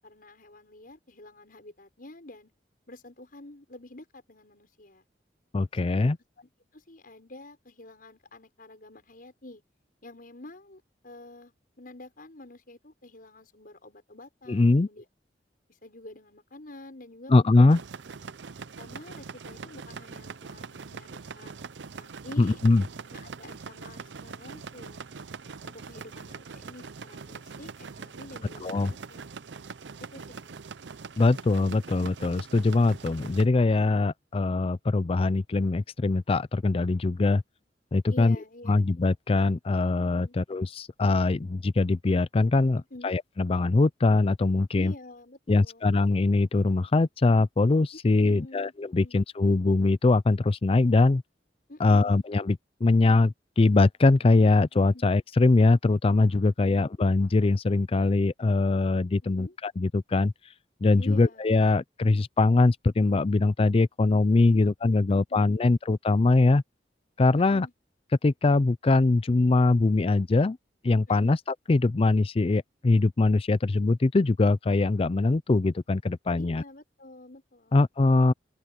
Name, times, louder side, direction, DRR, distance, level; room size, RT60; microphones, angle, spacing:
voice 1, 0.0-2.5 2.9-5.0 5.9-9.6 10.0-15.1 15.7-17.8 18.8-21.5 21.9-22.6 23.1-25.0 25.6-29.3 30.0-30.6 38.1-38.8 40.1-40.4 42.7-43.1 44.7-45.9 48.2-49.2 51.7-52.2 54.9-55.1 59.3-59.6 61.0-61.4 64.5-65.8 67.3-67.7 71.1-71.4 76.4-77.8, left 2 dB, 55° left, 6.4 m, -48 dB
voice 2, 5.5-6.2 14.5-14.9 17.3-17.8 22.4-22.8 28.6-28.9 31.2-37.4 37.9-38.4 38.7-44.9 45.5-51.2 51.8-59.5 59.8-60.3 60.8-66.6 67.2-67.7 68.2-70.6 70.8-71.4 71.7-76.6 77.7-78.3, left 3 dB, 35° left, 0.4 m, -22 dB
sound 1, 17.7-33.5, right 5 dB, 85° right, 0.6 m, -43 dB
open air
head